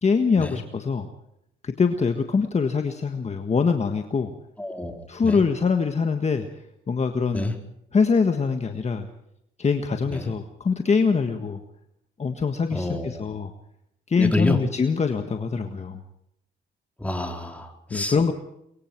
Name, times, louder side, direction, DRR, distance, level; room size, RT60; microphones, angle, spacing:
voice 1, 0.0-1.1 1.6-4.3 5.1-6.5 6.9-7.5 7.9-9.1 9.6-11.6 12.2-13.5 14.1-16.0 17.9-18.3, left 5 dB, 35° left, 6 dB, 1.6 m, -23 dB
voice 2, 4.6-5.4 7.3-7.5 10.1-10.3 12.7-13.2 14.2-14.6 17.0-18.3, left 1 dB, 5° left, 3 dB, 4.2 m, -28 dB
23.5 x 23.5 x 4.7 m, 0.78 s
cardioid pair, 90°, 20 cm